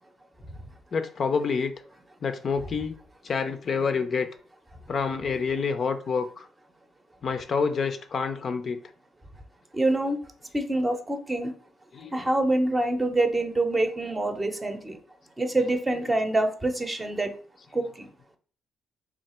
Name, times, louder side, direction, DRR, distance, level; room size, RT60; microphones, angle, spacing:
voice 1, 0.9-1.7 2.2-3.0 3.2-4.3 4.9-6.4 7.2-8.8 11.9-12.3 15.6-16.1, left 5 dB, 50° left, 0.4 m, -28 dB
voice 2, 9.7-10.2 10.5-11.5 12.1-15.0 15.4-17.3 17.7-18.1, right 2 dB, 20° right, 0.6 m, -26 dB
3.3 x 2.4 x 4.2 m
cardioid pair, 90°, 0 cm